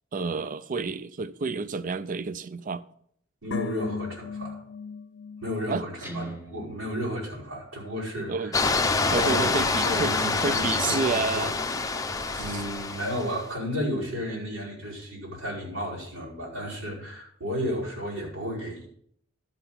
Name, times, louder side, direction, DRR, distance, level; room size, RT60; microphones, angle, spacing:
voice 1, 0.1-2.8 5.7-5.8 8.3-8.6 9.1-10.1 10.4-11.5 12.3-12.6, right 4 dB, 40° right, 0.4 m, -30 dB
voice 2, 3.4-4.6 5.4-8.6 8.9-11.5 12.4-18.9, equal, 85° right, 5.2 m, -33 dB
sound 1, 3.5-6.8 7.1-7.2, left 6 dB, 60° left, 0.4 m, -38 dB
Guitar, 6.0-8.1, right 2 dB, 10° right, 1.3 m, -42 dB
sound 2, 8.5-13.4, left 3 dB, 15° left, 0.6 m, -26 dB
12.0 x 5.9 x 7.0 m
head